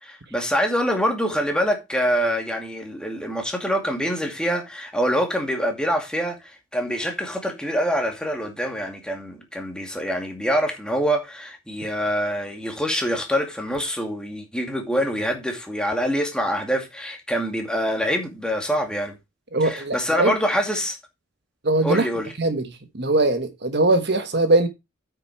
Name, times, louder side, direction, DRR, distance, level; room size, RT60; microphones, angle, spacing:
voice 1, 0.0-19.2 19.6-21.0 21.8-22.3, equal, 5° left, 2.3 m, -25 dB
voice 2, 19.5-20.3 21.6-22.0 22.4-22.6 22.9-24.7, right 2 dB, 55° right, 1.2 m, -20 dB
8.9 x 6.9 x 4.7 m
head